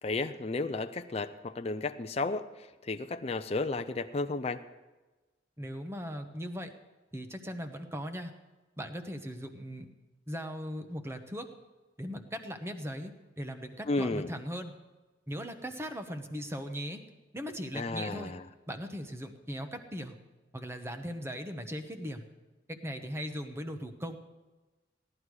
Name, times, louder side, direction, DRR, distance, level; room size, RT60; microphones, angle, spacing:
voice 1, 0.0-4.6 13.9-14.3 17.7-18.4, left 3 dB, 35° left, 8 dB, 0.5 m, -33 dB
voice 2, 5.6-6.7 7.1-8.3 8.8-9.9 10.3-11.5 12.0-14.7 15.3-17.0 17.3-18.3 18.7-20.2 20.5-22.3 22.7-24.2, equal, 15° right, 7 dB, 1.0 m, -39 dB
17.0 x 11.0 x 4.8 m, 1.2 s
head